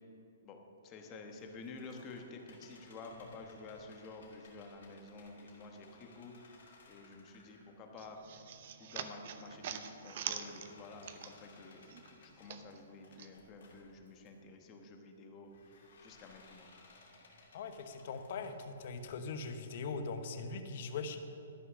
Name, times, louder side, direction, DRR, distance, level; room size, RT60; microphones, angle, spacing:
voice 1, 0.8-6.6 6.9-8.4 8.8-11.9 12.2-16.7, left 3 dB, 25° left, 3 dB, 1.2 m, -50 dB
sound 1, 1.3-8.5 9.0-14.3 15.4-19.1, left 3 dB, 65° left, 2.7 m, -62 dB
sound 2, 8.0-11.6 11.9-13.3, right 9 dB, 50° right, 0.7 m, -44 dB
voice 2, 17.5-21.2, left 4 dB, 50° left, 7 dB, 1.0 m, -41 dB
13.0 x 6.1 x 6.2 m, 2.8 s
hypercardioid pair, 155°, 0 cm